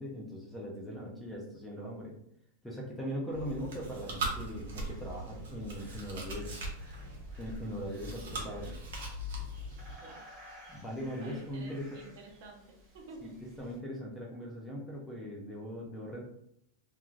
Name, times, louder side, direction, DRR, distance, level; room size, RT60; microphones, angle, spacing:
voice 1, 0.0-2.2 2.6-6.7 7.4-8.8 10.7-11.9 13.2-13.3 13.6-16.2, equal, 5° left, -3 dB, 0.3 m, -40 dB
Chewing mastication, 3.3-9.9, right 1 dB, 90° right, 0.8 m, -40 dB
sound 1, 4.6-13.8, equal, 25° right, 0.9 m, -57 dB
voice 2, 11.2-13.5, right 3 dB, 45° right, 1 dB, 0.6 m, -51 dB
2.4 x 2.3 x 3.0 m, 0.74 s
supercardioid pair, 175°, 0 cm